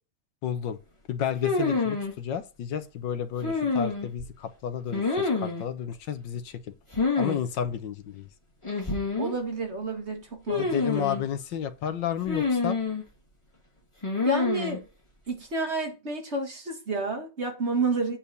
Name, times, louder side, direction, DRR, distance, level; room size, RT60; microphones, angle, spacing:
voice 1, 0.4-0.8 1.1-6.6 7.2-8.3 10.5-12.8, left 8 dB, 75° left, 1.6 m, -32 dB
sound 1, 1.4-2.1 3.4-4.3 4.9-5.6 6.9-7.4 7.7-7.8 8.6-9.3 10.5-11.2 12.3-13.0 14.0-14.8, left 4 dB, 15° left, 1.9 m, -27 dB
voice 2, 9.2-10.7 10.9-11.1 14.2-14.8 15.3-18.2, right 2 dB, 35° right, 1.8 m, -30 dB
8.7 x 4.4 x 6.8 m
omnidirectional pair, 2.0 m